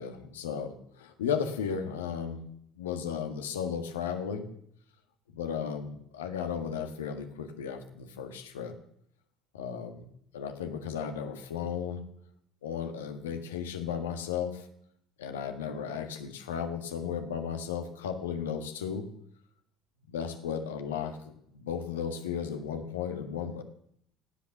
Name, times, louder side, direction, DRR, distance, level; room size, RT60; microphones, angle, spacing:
voice 1, 0.0-2.4 2.7-4.5 5.3-8.7 9.5-10.1 10.3-12.0 12.6-14.7 15.2-19.1 20.1-23.6, left 7 dB, 90° left, 6 dB, 1.6 m, -35 dB
17.5 x 8.4 x 7.2 m, 0.70 s
hypercardioid pair, 70°, 0 cm